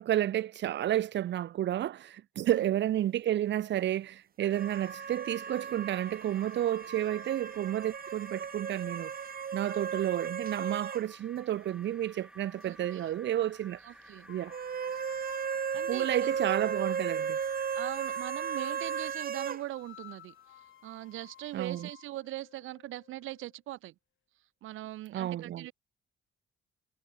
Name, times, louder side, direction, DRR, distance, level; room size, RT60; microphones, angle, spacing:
voice 1, 0.0-9.1 9.5-13.8 14.3-14.5 15.9-17.4 21.5-21.9 25.1-25.7, right 12 dB, 65° right, 0.8 m, -31 dB
voice 2, 2.4-2.7 12.6-13.1 13.8-14.3 15.7-16.1 17.8-20.3 20.8-23.9 24.6-25.7, right 16 dB, 90° right, 1.9 m, -41 dB
sound 1, 4.4-19.2, right 1 dB, 5° right, 5.4 m, -52 dB
sound 2, 4.5-11.1 11.4-11.5 14.5-19.6, right 7 dB, 45° right, 2.6 m, -35 dB
sound 3, 14.2-17.1 17.9-19.0 19.6-23.6, left 12 dB, 75° left, 6.8 m, -55 dB
cardioid pair, 90°, 20 cm